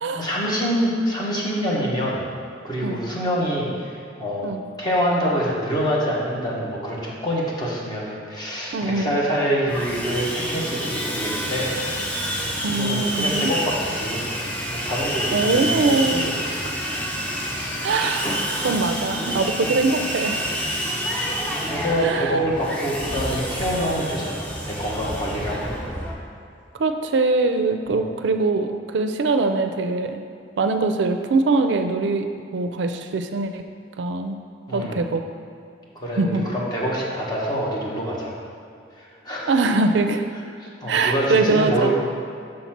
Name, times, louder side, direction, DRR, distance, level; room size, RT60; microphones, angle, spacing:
voice 1, 0.1-2.2 2.6-4.5 4.8-11.7 12.7-14.2 14.7-16.2 16.5-16.7 21.6-25.7 27.9-28.1 34.7-35.0 35.9-38.3 39.2-39.5 40.6-41.9, equal, 25° left, -5 dB, 1.3 m, -26 dB
voice 2, 8.7-9.1 12.6-13.5 15.3-16.3 17.8-18.3 18.6-20.4 22.0-22.4 26.8-30.2 30.6-32.3 32.5-33.6 34.0-34.4 34.7-35.2 36.2-36.4 39.5-40.3 40.9-41.9, right 3 dB, 70° right, 7 dB, 0.4 m, -22 dB
Sawing, 9.7-26.1, equal, 10° left, 0.8 m, -28 dB
6.4 x 4.1 x 5.8 m, 2.5 s
head